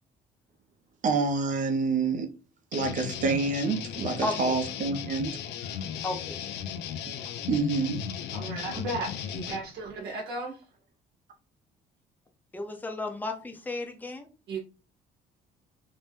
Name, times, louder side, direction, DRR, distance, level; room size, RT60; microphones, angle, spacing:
voice 1, 1.0-2.3 2.7-5.8 7.2-8.0, right 4 dB, 50° right, 0.7 m, -28 dB
sound 1, 2.7-9.6, left 8 dB, 80° left, 0.4 m, -36 dB
voice 2, 4.2-4.6 6.0-6.4 12.5-14.3, left 2 dB, 10° left, 0.6 m, -33 dB
voice 3, 8.3-10.6 14.5-14.6, right 2 dB, 75° right, 0.9 m, -35 dB
2.7 x 2.1 x 3.3 m
cardioid pair, 110°, 17 cm